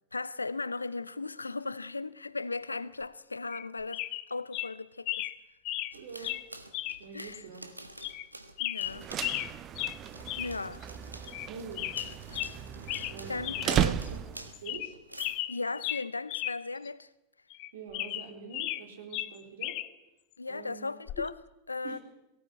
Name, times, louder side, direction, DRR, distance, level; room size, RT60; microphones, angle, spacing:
voice 1, 0.1-5.3 6.2-6.3 7.1-7.5 8.6-9.1 10.4-10.8 11.3-11.4 12.3-12.4 13.3-14.1 15.5-17.1 20.4-22.0, left 3 dB, 80° left, 0.7 m, -37 dB
sound 1, 3.5-3.7 3.9-4.2 4.5-4.7 5.1-5.3 5.7-5.9 6.2-6.4 6.7-7.0 7.3-7.4 8.0-8.3 8.6-9.5 9.8-10.0 10.3-10.5 10.8-10.9 11.3-11.5 11.8-12.5 12.9-13.2 13.4-13.7 14.1-14.2 14.5-14.9 15.2-16.6 16.9-17.0 17.5-18.8 19.1-19.9 21.1-21.3, left 16 dB, 40° left, 0.9 m, -35 dB
voice 2, 5.9-6.4 7.0-7.7 11.5-11.9 13.0-14.2 14.6-15.0 17.7-19.8 20.5-20.9 21.8-22.0, right 5 dB, 60° right, 4.1 m, -45 dB
sound 2, 5.9-9.6 10.0-15.4, right 1 dB, 85° right, 1.4 m, -48 dB
sound 3, 8.8-14.6, right 10 dB, 30° right, 0.8 m, -35 dB
18.0 x 17.5 x 8.3 m
figure-of-eight pair, 90°, 0 cm